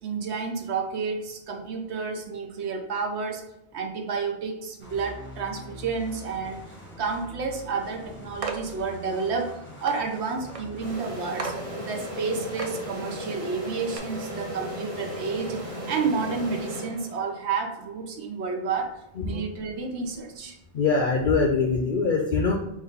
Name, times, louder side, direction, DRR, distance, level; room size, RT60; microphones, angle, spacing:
voice 1, 0.0-3.4 3.7-6.6 7.0-9.5 9.8-11.5 11.8-18.9 19.2-20.6, right 5 dB, 80° right, 2 dB, 1.0 m, -30 dB
sound 1, 4.8-10.9, left 1 dB, 15° left, 0.7 m, -44 dB
sound 2, 8.4-8.7 9.4-9.5 9.9-10.0 10.5-10.6 11.0-11.1 11.4-11.6 12.1-12.2 12.6-12.8 13.4-13.5 13.9-14.0, right 5 dB, 55° right, 0.4 m, -34 dB
sound 3, 10.8-17.5, equal, 30° right, 0.9 m, -36 dB
voice 2, 20.7-22.5, left 4 dB, 60° left, 0 dB, 0.6 m, -23 dB
4.1 x 2.5 x 3.8 m, 0.86 s
omnidirectional pair, 1.1 m